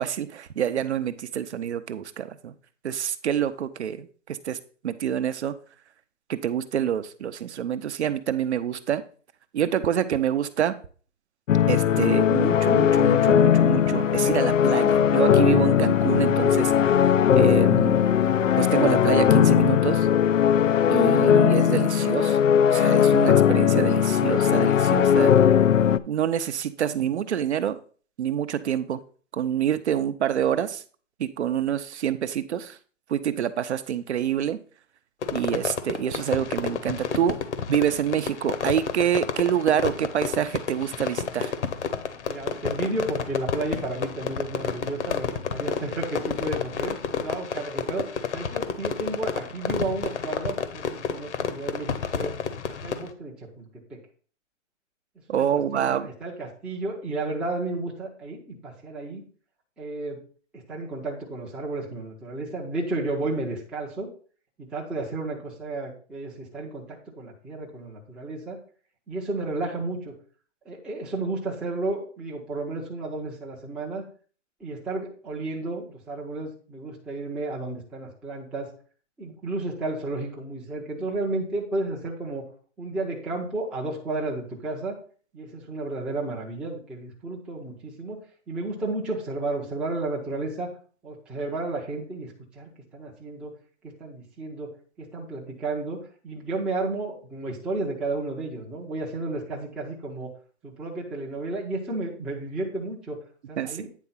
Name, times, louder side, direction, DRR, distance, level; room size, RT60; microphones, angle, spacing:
voice 1, 0.0-2.5 2.8-4.6 4.8-5.6 6.3-9.0 9.5-10.8 11.7-18.0 18.6-20.1 20.9-22.4 22.7-25.3 26.0-27.8 28.2-29.0 29.3-30.8 31.2-32.8 33.1-34.6 35.3-37.4 37.7-41.5 55.3-56.1 103.6-103.9, right 9 dB, 60° right, 12 dB, 0.8 m, -26 dB
sound 1, 11.5-26.0, left 9 dB, 80° left, 0.6 m, -19 dB
Livestock farm animals working animals, 12.4-20.7, right 5 dB, 30° right, 0.8 m, -42 dB
Fireworks, 35.2-53.1, left 6 dB, 60° left, 1.1 m, -30 dB
voice 2, 42.3-52.4 52.7-54.0 55.3-59.2 59.8-60.2 60.5-64.1 64.6-68.6 69.1-70.2 70.6-74.0 74.6-78.7 79.2-82.4 82.8-85.0 85.3-90.7 91.0-93.5 93.8-94.7 95.0-96.0 96.2-100.3 100.6-103.2 103.5-103.9, right 2 dB, 5° right, -4 dB, 0.6 m, -32 dB
9.2 x 3.6 x 5.6 m, 0.42 s
hypercardioid pair, 150°, 38 cm